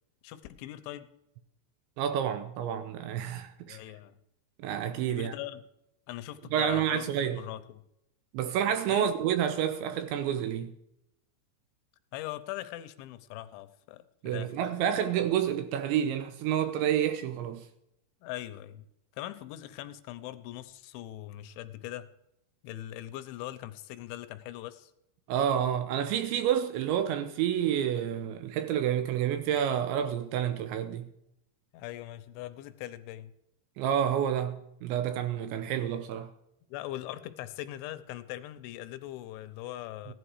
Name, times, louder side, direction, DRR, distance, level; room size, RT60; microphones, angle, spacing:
voice 1, 0.2-1.1 3.7-4.2 5.1-5.6 6.1-7.8 8.9-9.1 12.1-14.5 18.2-18.8 19.1-22.1 22.6-24.9 31.7-33.3 36.7-40.1, left 14 dB, 80° left, 3.0 m, -41 dB
voice 2, 2.0-3.8 4.6-5.3 6.5-7.4 8.3-10.7 14.2-17.6 25.3-31.1 33.8-36.3, right 9 dB, 80° right, 2.9 m, -29 dB
16.0 x 11.5 x 4.8 m
omnidirectional pair, 5.7 m